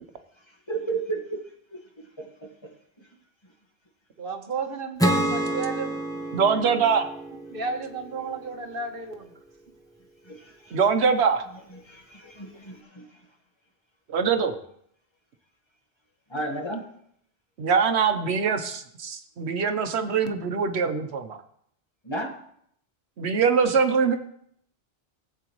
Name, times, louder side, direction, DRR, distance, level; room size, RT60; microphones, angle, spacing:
voice 1, 0.7-1.4 1.7-1.8 2.2-2.3 3.0-3.1 10.2-10.8 11.7-13.1 16.3-16.8 22.0-22.4, right 3 dB, 25° left, 1 dB, 1.6 m, -33 dB
voice 2, 4.2-5.9 7.5-9.3, right 4 dB, 60° right, 4 dB, 1.2 m, -32 dB
Acoustic guitar / Strum, 5.0-8.4, right 1 dB, 5° left, 0.9 m, -28 dB
voice 3, 6.3-7.1 10.7-11.5 14.1-14.6 17.6-21.4 23.2-24.2, right 5 dB, 85° right, 7 dB, 1.2 m, -23 dB
17.0 x 8.0 x 3.1 m, 0.68 s
omnidirectional pair, 1.1 m